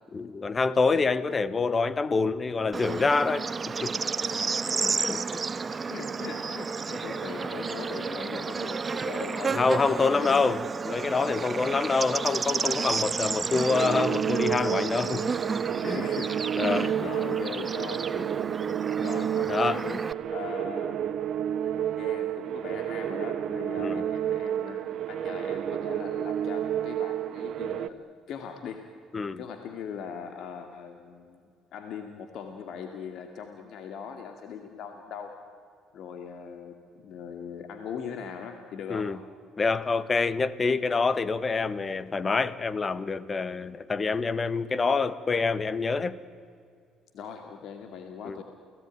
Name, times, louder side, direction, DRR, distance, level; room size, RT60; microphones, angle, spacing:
voice 1, 0.1-3.5 3.8-3.9 4.8-5.2 9.6-15.3 15.8-16.0 16.6-16.9 18.1-18.2 19.5-19.8 23.8-24.0 29.1-29.4 38.9-39.2 39.6-46.2 48.2-48.4, left 4 dB, 35° left, 1.5 m, -26 dB
Bird / Insect, 2.7-20.1, right 5 dB, 35° right, 0.9 m, -32 dB
voice 2, 4.2-4.9 5.7-9.6 9.9-10.5 11.2-11.5 12.8-13.0 15.8-18.4 19.0-20.0 20.3-21.0 21.6-28.0 28.3-28.9 29.4-31.4 31.7-35.3 35.9-39.1 47.1-48.4, left 7 dB, 65° left, 2.3 m, -40 dB
sound 1, 13.7-27.9, right 10 dB, 60° right, 1.2 m, -30 dB
29.0 x 18.5 x 9.5 m
hypercardioid pair, 55°, 0 cm